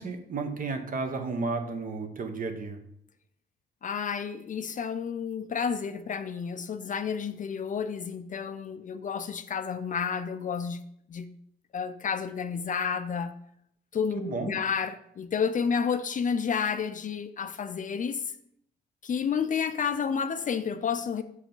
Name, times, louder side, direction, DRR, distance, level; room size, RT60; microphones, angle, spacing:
voice 1, 0.0-2.8 14.1-14.5, right 4 dB, 45° right, 6 dB, 1.0 m, -32 dB
voice 2, 3.8-10.8 11.1-11.3 11.7-13.3 13.9-18.2 19.0-21.2, left 6 dB, 40° left, 10 dB, 0.5 m, -30 dB
5.7 x 4.8 x 3.8 m, 0.71 s
cardioid pair, 90°, 20 cm